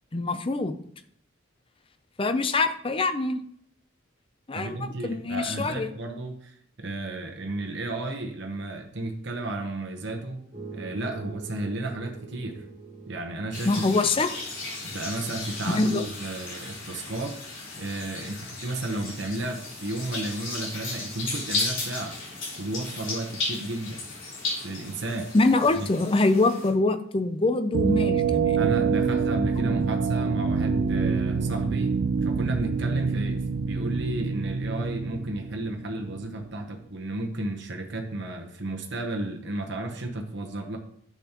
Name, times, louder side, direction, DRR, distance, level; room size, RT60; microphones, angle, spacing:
voice 1, 0.1-0.7 2.2-3.4 4.5-5.9 13.7-14.3 15.6-16.0 25.3-28.6 29.5-29.8, left 3 dB, 25° left, 10 dB, 0.5 m, -24 dB
voice 2, 4.5-10.4 10.7-12.6 13.1-13.7 14.8-17.4 17.8-22.2 22.6-24.0 24.6-25.3 25.7-25.9 28.6-40.8, right 2 dB, 55° right, 2 dB, 1.1 m, -33 dB
sound 1, 10.5-15.8, right 4 dB, 30° right, 2.3 m, -44 dB
sound 2, 13.5-26.7, left 3 dB, 65° left, 3.6 m, -35 dB
sound 3, 27.7-36.4, right 5 dB, 80° right, 0.4 m, -26 dB
10.0 x 7.2 x 3.0 m, 0.65 s
head